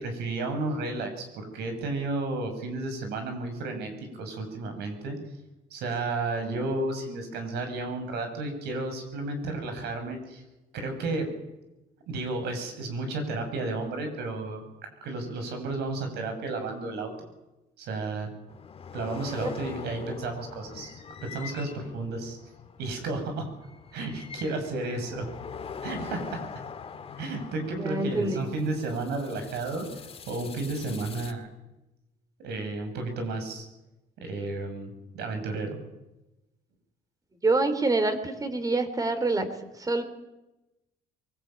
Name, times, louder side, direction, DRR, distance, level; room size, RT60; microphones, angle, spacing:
voice 1, 0.0-5.2 5.7-10.4 10.7-11.3 12.1-14.7 15.0-17.3 17.8-18.3 18.9-22.4 22.8-23.5 23.9-25.3 25.8-26.4 27.2-29.9 30.3-31.5 32.4-33.7 34.2-35.8, right 2 dB, 80° right, 6 dB, 6.8 m, -32 dB
sound 1, 18.5-31.3, left 6 dB, 35° left, 2.2 m, -43 dB
voice 2, 27.7-28.4 37.4-39.5 39.8-40.0, right 2 dB, 20° right, 10 dB, 3.6 m, -26 dB
23.0 x 20.5 x 9.0 m, 1.0 s
cardioid pair, 110°, 17 cm